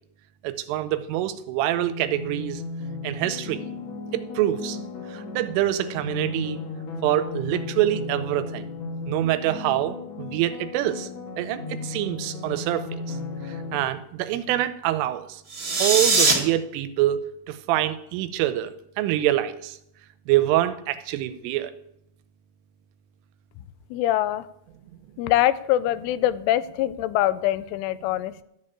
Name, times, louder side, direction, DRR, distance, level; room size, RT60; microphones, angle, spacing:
voice 1, 0.4-2.6 3.0-3.6 4.1-4.8 5.1-6.6 7.0-8.7 9.1-11.1 11.4-13.2 13.7-15.4 15.8-17.2 17.5-18.7 19.0-19.8 20.3-21.7, right 13 dB, 85° right, 12 dB, 3.3 m, -25 dB
sound 1, 1.7-13.8, left 3 dB, 50° left, 2.0 m, -35 dB
sound 2, 15.5-16.3, right 3 dB, 30° right, 1.8 m, -20 dB
voice 2, 23.9-24.5 25.2-28.4, left 13 dB, 85° left, 13 dB, 3.1 m, -23 dB
14.0 x 6.7 x 8.6 m, 0.78 s
omnidirectional pair, 5.7 m